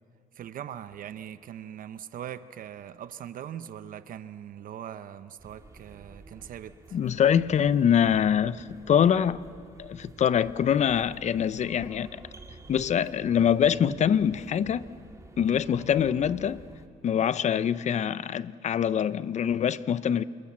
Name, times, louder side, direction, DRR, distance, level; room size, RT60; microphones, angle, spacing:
voice 1, 0.3-7.0, right 10 dB, 55° right, 0.8 m, -41 dB
sound 1, 5.4-16.9, right 3 dB, 20° right, 1.9 m, -50 dB
voice 2, 6.9-9.4 9.8-12.2 12.7-14.8 15.4-16.6 17.0-20.2, left 8 dB, 45° left, 0.7 m, -24 dB
28.0 x 20.5 x 7.4 m
cardioid pair, 110°, 17 cm